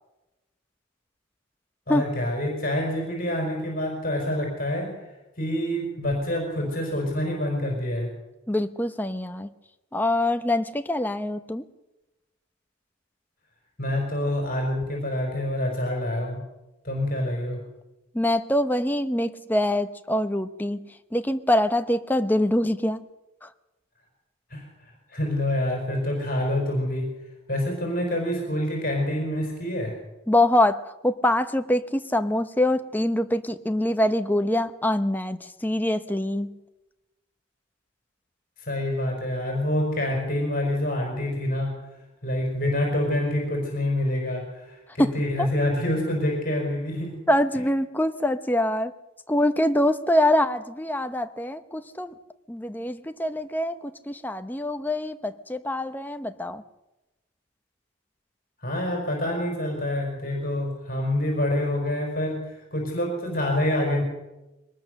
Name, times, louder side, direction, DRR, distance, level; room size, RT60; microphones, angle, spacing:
voice 1, 1.9-5.1 5.4-8.1 13.8-16.4 16.8-17.6 24.5-27.1 27.5-29.9 38.6-41.8 42.2-47.2 58.6-64.0, left 1 dB, 45° left, 0 dB, 5.1 m, -27 dB
voice 2, 8.5-9.5 9.9-11.6 18.1-20.8 21.1-23.1 23.4-23.5 30.3-36.5 45.0-45.1 45.4-45.5 47.3-48.9 49.3-52.1 52.5-56.6, left 1 dB, 10° left, 8 dB, 0.8 m, -24 dB
22.5 x 19.5 x 6.6 m, 1.0 s
head